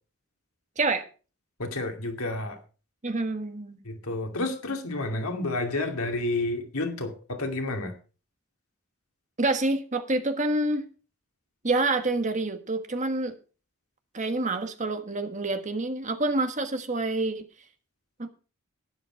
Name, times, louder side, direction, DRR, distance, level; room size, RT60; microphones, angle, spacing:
voice 1, 1.6-2.6 3.8-7.9, left 2 dB, 85° left, 4 dB, 2.5 m, -30 dB
voice 2, 3.0-3.8 9.4-10.8 11.6-13.3 14.1-17.4 18.2-18.3, right 2 dB, 35° right, 7 dB, 1.4 m, -27 dB
12.0 x 10.0 x 4.5 m, 0.36 s
head